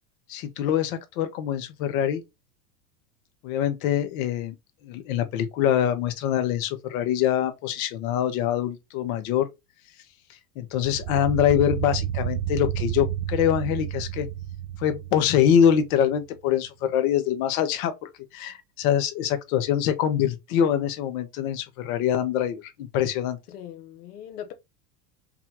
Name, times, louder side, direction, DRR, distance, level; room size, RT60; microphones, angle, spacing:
voice 1, 0.3-2.2 3.4-4.5 4.8-9.5 10.6-14.3 14.8-23.4, left 9 dB, 65° left, 1.3 m, -24 dB
sound 1, 10.7-16.0, right 11 dB, 70° right, 0.7 m, -31 dB
voice 2, 23.5-24.5, left 10 dB, 80° left, 1.4 m, -40 dB
5.5 x 2.5 x 2.9 m
supercardioid pair, 110°, 45 cm